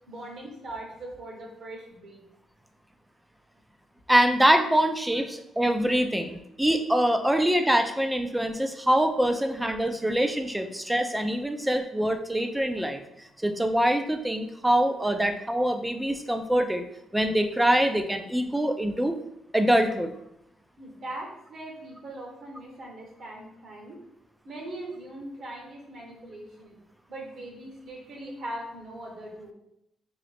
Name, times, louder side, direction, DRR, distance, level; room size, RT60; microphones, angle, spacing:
voice 1, 0.1-2.2 9.3-9.4 20.8-24.0 24.4-26.8 27.1-29.5, right 1 dB, 60° right, 0 dB, 1.2 m, -40 dB
voice 2, 4.1-13.0 13.4-16.8 17.1-19.1 19.5-20.1, right 1 dB, 5° right, 7 dB, 0.4 m, -24 dB
3.8 x 2.8 x 3.4 m, 0.80 s
cardioid pair, 90°, 0 cm